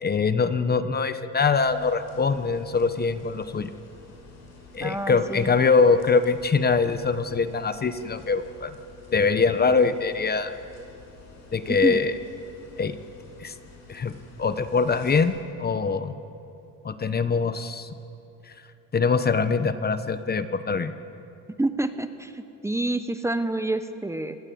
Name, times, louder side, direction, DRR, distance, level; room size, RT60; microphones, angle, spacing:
voice 1, 0.0-3.7 4.7-8.8 9.1-10.5 11.5-12.2 12.8-13.0 13.4-13.5 13.9-16.1 16.8-17.9 18.9-20.9, left 4 dB, 25° left, 11 dB, 1.1 m, -23 dB
sound 1, 1.6-15.2, left 3 dB, 45° left, 7.7 m, -49 dB
voice 2, 4.8-5.5 11.7-12.0 21.6-24.4, right 2 dB, 10° right, 10 dB, 1.0 m, -28 dB
26.0 x 19.0 x 8.7 m, 2.7 s
cardioid pair, 115°, 37 cm